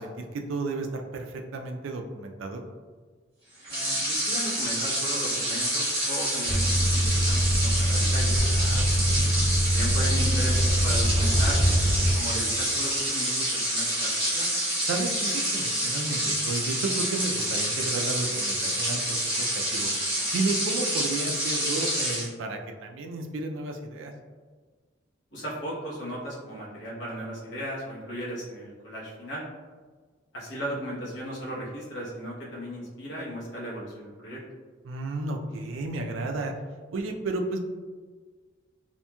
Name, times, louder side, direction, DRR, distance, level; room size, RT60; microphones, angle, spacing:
voice 1, 0.0-2.6 8.5-9.3 14.9-19.5 19.7-19.9 20.3-24.1 34.8-36.5 36.9-37.6, right 3 dB, 80° right, 4 dB, 0.4 m, -32 dB
sound 1, 3.6-22.3, right 1 dB, 30° right, 1.0 m, -28 dB
voice 2, 3.7-8.4 9.6-11.6 12.1-14.5 25.3-29.4 30.3-34.4, equal, 65° left, -6 dB, 1.0 m, -36 dB
sound 2, 6.5-12.1, equal, 5° left, 1.3 m, -24 dB
2.9 x 2.5 x 2.2 m, 1.4 s
head